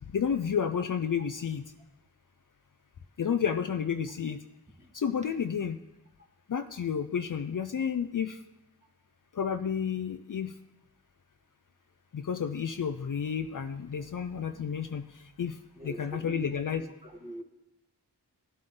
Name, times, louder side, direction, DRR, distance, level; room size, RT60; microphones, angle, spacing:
voice 1, 0.1-1.6 3.2-4.4 4.9-5.8 6.5-8.4 9.3-10.5 12.1-15.6 15.8-16.8, left 7 dB, 50° left, 9 dB, 0.5 m, -31 dB
voice 2, 15.7-17.4, equal, 15° right, 2 dB, 1.8 m, -44 dB
14.5 x 7.8 x 3.8 m, 0.94 s
wide cardioid pair, 55°, 40 cm